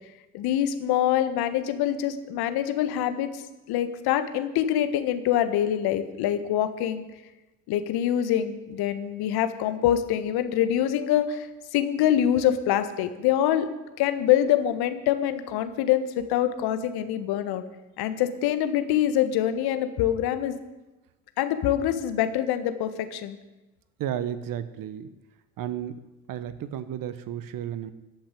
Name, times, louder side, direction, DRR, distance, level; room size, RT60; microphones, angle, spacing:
voice 1, 0.3-3.4 3.7-7.0 7.7-11.5 11.7-13.7 14.0-17.6 18.0-20.5 21.4-23.4, left 11 dB, 60° left, 10 dB, 1.5 m, -25 dB
voice 2, 24.0-25.1 25.6-26.0 26.3-27.9, right 10 dB, 50° right, 13 dB, 1.1 m, -33 dB
14.5 x 7.2 x 9.1 m, 1.0 s
hypercardioid pair, 60°, 42 cm